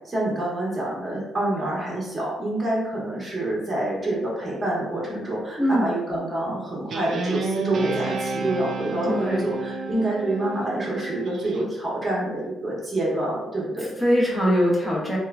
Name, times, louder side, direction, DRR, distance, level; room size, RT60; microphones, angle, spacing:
voice 1, 0.0-13.9, right 1 dB, 20° right, -5 dB, 0.9 m, -27 dB
voice 2, 5.6-5.9 9.1-9.5 14.0-15.2, equal, 10° left, -4 dB, 0.8 m, -21 dB
Guitar, 6.9-11.6, right 3 dB, 60° right, 0.3 m, -30 dB
2.9 x 2.1 x 2.4 m, 0.97 s
cardioid pair, 90°, 0 cm